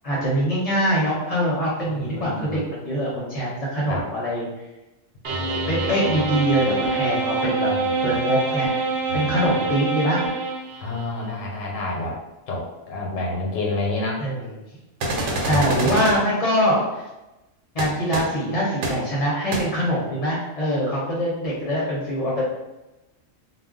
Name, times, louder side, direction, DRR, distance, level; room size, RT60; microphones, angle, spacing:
voice 1, 0.0-4.5 5.7-7.7 8.0-8.9 9.1-10.2 14.2-14.6 15.4-17.0 17.7-22.4, equal, 35° left, -6 dB, 0.6 m, -23 dB
voice 2, 1.9-2.6 3.9-4.0 7.7-8.1 9.1-9.3 10.8-12.2 12.5-14.2 15.4-16.0, left 2 dB, 85° left, -2 dB, 1.0 m, -29 dB
sound 1, 5.2-11.0, right 4 dB, 60° right, 0.8 m, -25 dB
sound 2, 15.0-16.1 17.8-17.9 18.1-18.2 18.8-18.9 19.5-19.6, right 1 dB, 85° right, 1.0 m, -25 dB
2.4 x 2.0 x 3.6 m, 1.0 s
omnidirectional pair, 1.3 m